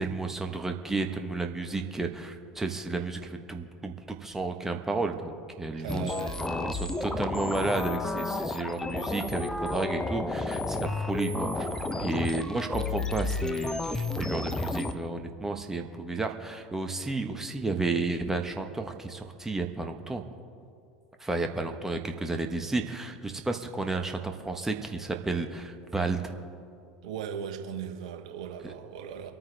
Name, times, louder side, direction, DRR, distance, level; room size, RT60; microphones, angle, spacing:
voice 1, 0.0-11.7 12.0-20.2 21.2-26.3 28.6-28.7, right 3 dB, 10° right, 5 dB, 1.3 m, -32 dB
voice 2, 5.7-7.2 11.9-12.4 27.0-29.3, right 8 dB, 70° right, 5 dB, 1.3 m, -39 dB
sound 1, 5.9-14.9, left 3 dB, 15° left, 0.9 m, -31 dB
25.0 x 9.5 x 3.5 m, 2.4 s
figure-of-eight pair, 75°, 4 cm